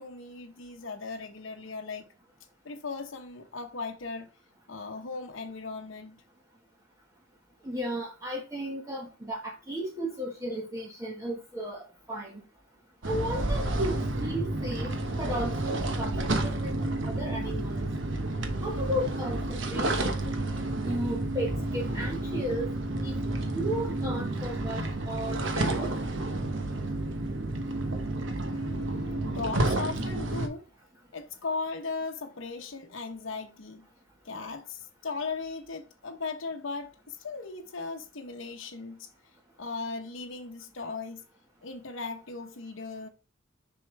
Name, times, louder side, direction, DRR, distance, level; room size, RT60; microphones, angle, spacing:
voice 1, 0.0-2.0 2.6-4.3 4.7-6.2 28.4-30.7 31.1-33.9 34.2-39.1 39.6-41.2 41.6-43.1, left 4 dB, 80° left, 0.8 m, -37 dB
voice 2, 7.6-12.4 13.0-17.9 18.6-20.3 20.8-22.7 23.0-23.1 23.5-25.9, equal, 15° right, 1.2 m, -34 dB
sound 1, 13.0-30.5, right 2 dB, 70° right, 1.1 m, -30 dB
6.7 x 5.5 x 3.2 m
head